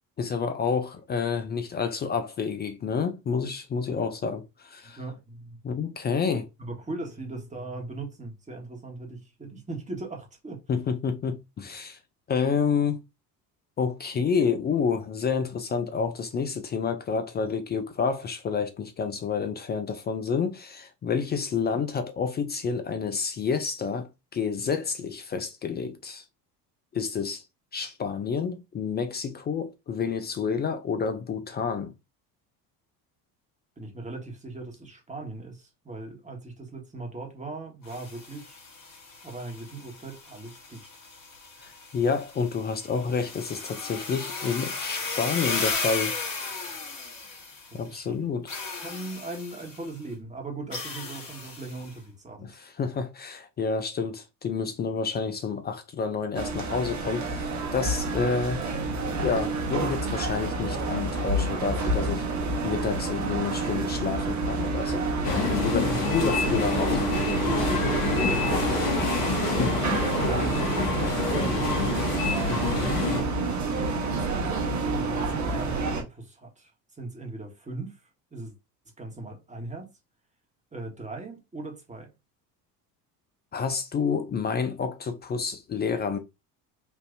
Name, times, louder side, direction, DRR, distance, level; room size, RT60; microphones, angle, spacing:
voice 1, 0.2-5.0 5.6-6.5 10.7-12.0 12.3-13.0 13.8-26.2 26.9-27.4 27.7-31.9 41.6-46.1 47.7-48.4 52.4-57.5 57.7-58.6 59.1-62.3 62.6-65.0 65.5-67.6 69.6-69.8 72.5-73.0 83.5-86.2, left 5 dB, 25° left, 0.3 m, -29 dB
voice 2, 4.8-5.6 6.6-10.6 33.8-38.6 39.2-40.9 47.7-52.5 65.8-66.1 68.2-68.9 69.6-72.1 73.0-73.4 74.1-76.7 77.0-78.5 79.0-79.9 80.7-82.1, right 2 dB, 15° right, 1.3 m, -39 dB
sound 1, 37.8-47.9 48.5-49.9 50.7-51.9, left 4 dB, 40° left, 1.6 m, -35 dB
sound 2, 56.3-76.0, right 3 dB, 35° right, 1.2 m, -29 dB
sound 3, 65.2-73.2, left 3 dB, 60° left, 1.5 m, -27 dB
3.5 x 2.6 x 2.5 m
hypercardioid pair, 70°, 49 cm